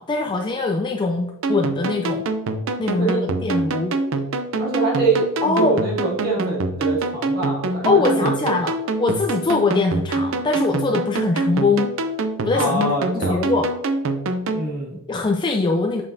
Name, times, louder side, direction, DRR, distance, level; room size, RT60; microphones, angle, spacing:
voice 1, 0.0-2.2 2.8-4.0 5.4-5.8 7.8-8.7 9.0-11.9 12.4-13.7 15.1-16.0, left 3 dB, 20° left, 3 dB, 0.4 m, -22 dB
sound 1, 1.4-14.7, right 2 dB, 65° right, 0.6 m, -25 dB
voice 2, 3.0-3.5 4.6-8.5 12.5-13.4 14.5-15.0, right 3 dB, 45° right, -4 dB, 2.1 m, -25 dB
6.9 x 5.4 x 2.7 m, 0.93 s
head